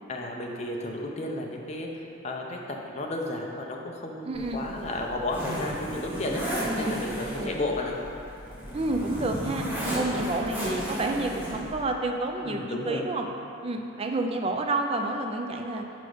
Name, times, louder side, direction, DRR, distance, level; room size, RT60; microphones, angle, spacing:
voice 1, 0.1-6.4 6.8-8.0 12.4-13.1, left 2 dB, 30° left, 0 dB, 0.6 m, -33 dB
voice 2, 4.2-4.6 6.6-7.1 7.4-7.5 8.7-9.7 9.9-13.3 13.6-15.8, right 2 dB, 25° right, 3 dB, 0.4 m, -29 dB
Zipper (clothing), 4.3-11.7, right 1 dB, 10° right, 1.1 m, -34 dB
6.1 x 4.8 x 4.9 m, 2.7 s
head